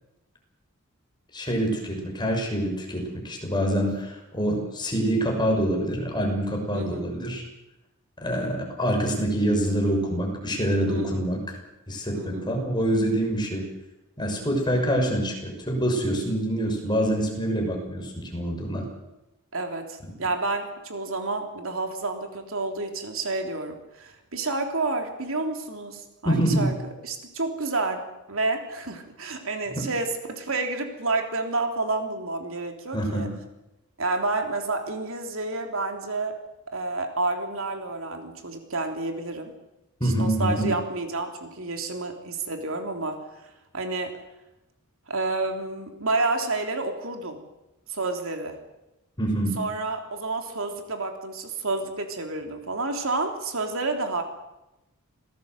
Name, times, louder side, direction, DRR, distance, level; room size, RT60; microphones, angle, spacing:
voice 1, 1.3-7.4 8.2-11.4 11.9-13.7 14.2-18.8 26.2-26.7 32.9-33.3 40.0-40.7 49.2-49.6, right 1 dB, 20° left, 2 dB, 6.4 m, -25 dB
voice 2, 6.7-7.1 10.9-11.3 12.1-12.5 19.5-33.3 34.0-36.4 36.7-39.5 40.0-43.4 43.7-44.1 45.1-47.4 47.9-48.6 49.6-54.2, right 3 dB, 70° right, 5 dB, 3.5 m, -30 dB
27.0 x 18.0 x 8.0 m, 0.96 s
head